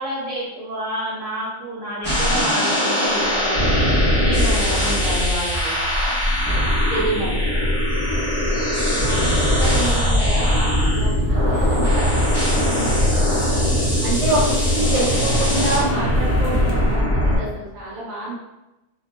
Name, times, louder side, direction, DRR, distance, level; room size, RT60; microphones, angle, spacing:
voice 1, 0.0-5.8 6.9-7.7, right 1 dB, 70° right, -8 dB, 1.3 m, -29 dB
sound 1, 2.0-17.4, equal, 10° left, 1.0 m, -20 dB
voice 2, 8.6-12.1 12.4-13.5 14.0-18.3, right 1 dB, 35° right, -9 dB, 1.1 m, -28 dB
sound 2, 10.9-17.0, left 2 dB, 80° left, 1.0 m, -33 dB
2.9 x 2.7 x 2.2 m, 0.96 s
omnidirectional pair, 1.4 m